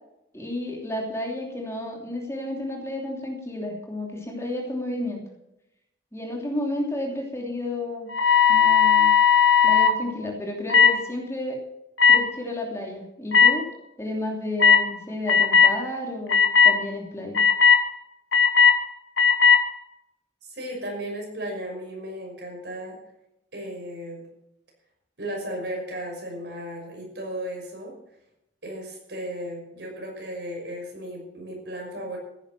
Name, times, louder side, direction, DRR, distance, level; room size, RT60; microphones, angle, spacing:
voice 1, 0.3-5.2 6.1-8.1 8.5-9.1 9.6-11.6 12.1-13.7 14.0-17.4, left 1 dB, 15° left, 0 dB, 2.9 m, -32 dB
sound 1, 8.1-9.9 10.7-10.9 12.0-12.2 13.3-13.5 14.6-14.8 15.3-15.7 16.3-16.7 17.3-17.8 18.3-18.7 19.2-19.6, left 6 dB, 75° left, 2.3 m, -16 dB
voice 2, 20.5-23.0 23.5-24.2 25.2-27.9 28.6-32.2, right 1 dB, 65° right, 0 dB, 5.9 m, -35 dB
15.5 x 10.5 x 6.0 m, 0.85 s
head